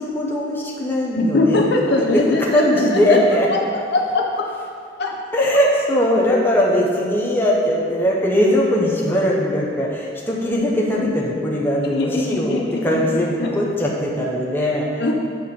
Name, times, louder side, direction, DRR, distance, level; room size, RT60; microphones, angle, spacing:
voice 1, 0.0-1.6 2.0-3.5 5.3-15.0, left 1 dB, 10° left, -4 dB, 1.1 m, -20 dB
voice 2, 1.2-3.2 3.5-3.6 3.9-4.4 5.0-5.6 11.9-12.8 13.1-13.5 15.0-15.1, left 2 dB, 60° left, 0 dB, 0.8 m, -21 dB
9.2 x 4.9 x 5.4 m, 2.2 s
head